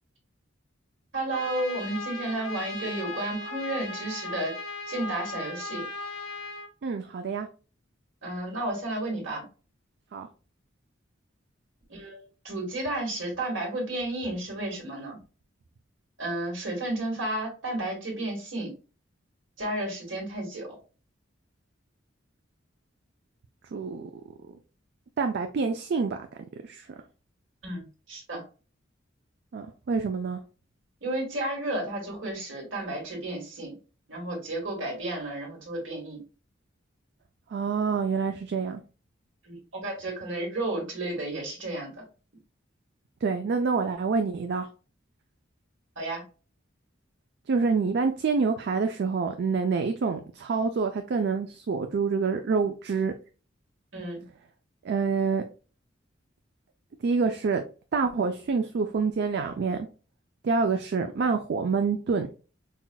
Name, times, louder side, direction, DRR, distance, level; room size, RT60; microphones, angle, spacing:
voice 1, 1.1-4.6 4.9-5.9 8.2-9.4 11.9-15.2 16.2-18.7 19.6-20.7 27.6-28.4 31.0-33.7 34.1-36.2 39.4-41.9 46.0-46.2 53.9-54.2, right 1 dB, 75° right, 1.7 m, -32 dB
Trumpet, 1.3-6.7, left 2 dB, 85° left, 0.8 m, -37 dB
voice 2, 6.8-7.5 10.1-10.3 23.7-24.1 25.2-26.3 26.6-26.9 29.5-30.4 37.5-38.8 43.2-44.7 47.5-53.1 54.8-55.4 57.0-57.6 57.9-59.9 60.4-62.3, right 4 dB, 55° right, 0.4 m, -27 dB
5.6 x 2.4 x 2.2 m
head